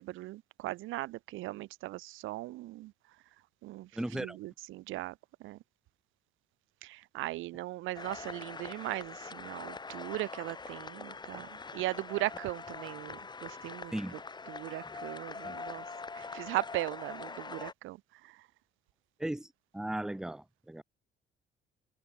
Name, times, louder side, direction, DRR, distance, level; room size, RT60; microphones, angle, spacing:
voice 1, 0.0-2.9 3.6-5.2 5.4-5.6 6.8-13.9 14.5-15.8 16.1-18.4, right 18 dB, 85° right, 0.4 m, -38 dB
voice 2, 3.9-4.4 13.9-14.2 15.4-15.6 19.2-19.5 19.7-20.8, right 1 dB, 5° right, 0.5 m, -36 dB
sound 1, 7.9-17.7, left 4 dB, 20° left, 0.8 m, -43 dB
cardioid pair, 90°, 20 cm